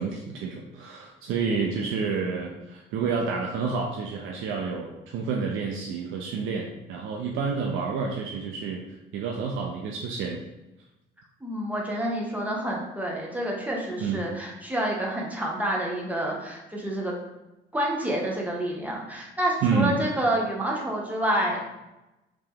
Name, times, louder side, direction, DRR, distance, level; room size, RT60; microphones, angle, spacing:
voice 1, 0.0-8.8 9.1-10.4 14.0-14.2 19.6-20.0, right 5 dB, 90° right, 0 dB, 0.4 m, -29 dB
voice 2, 11.4-17.1 17.7-21.6, right 1 dB, 5° right, -2 dB, 0.9 m, -28 dB
3.2 x 2.9 x 3.5 m, 0.98 s
cardioid pair, 90°, 20 cm